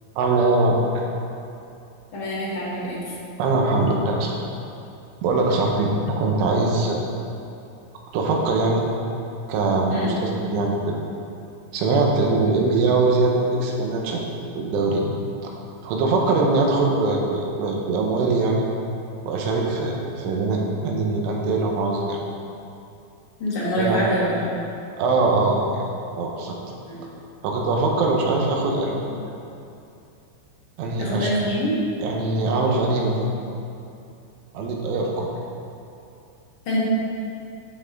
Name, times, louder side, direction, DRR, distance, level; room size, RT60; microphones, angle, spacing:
voice 1, 0.2-1.0 3.4-4.4 5.2-7.0 8.1-8.8 9.5-11.0 11.7-14.3 14.6-15.0 15.4-15.5 15.8-18.7 19.3-22.2 23.8-24.0 25.0-25.8 26.2-26.6 27.4-29.2 30.8-31.3 32.0-33.3 34.6-35.3, right 3 dB, 85° right, 0 dB, 3.6 m, -22 dB
voice 2, 2.1-3.0 9.9-10.1 23.4-24.6 26.9-27.0 31.0-31.7 36.6-36.8, equal, 70° left, -8 dB, 1.2 m, -25 dB
10.5 x 7.7 x 3.8 m, 2.7 s
omnidirectional pair, 5.4 m